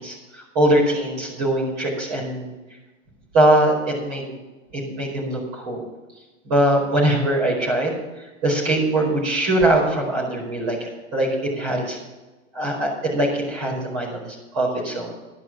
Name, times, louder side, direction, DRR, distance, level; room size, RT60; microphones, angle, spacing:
voice 1, 0.0-2.5 3.3-4.3 4.7-5.8 6.5-8.0 8.4-12.0 12.5-15.1, right 1 dB, 30° right, -3 dB, 4.7 m, -22 dB
11.0 x 10.5 x 6.0 m, 1.1 s
hypercardioid pair, 175°, 40 cm